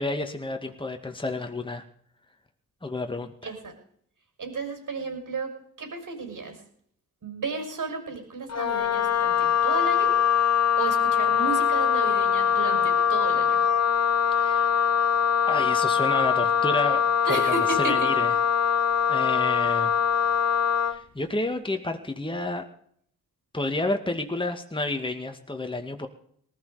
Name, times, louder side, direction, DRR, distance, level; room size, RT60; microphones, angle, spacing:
voice 1, 0.0-1.8 2.8-3.5 14.4-14.9 15.5-17.0 17.3-18.3 19.1-19.9 20.9-22.7 23.5-26.1, left 2 dB, 10° left, 5 dB, 2.3 m, -30 dB
voice 2, 3.4-3.7 4.4-6.6 7.2-10.1 10.8-13.6 17.3-18.1, right 4 dB, 50° right, 5 dB, 6.0 m, -33 dB
Wind instrument woodwind instrument, 8.5-21.0, left 7 dB, 40° left, 1.2 m, -23 dB
19.0 x 13.0 x 5.2 m, 0.62 s
hypercardioid pair, 40°, 41 cm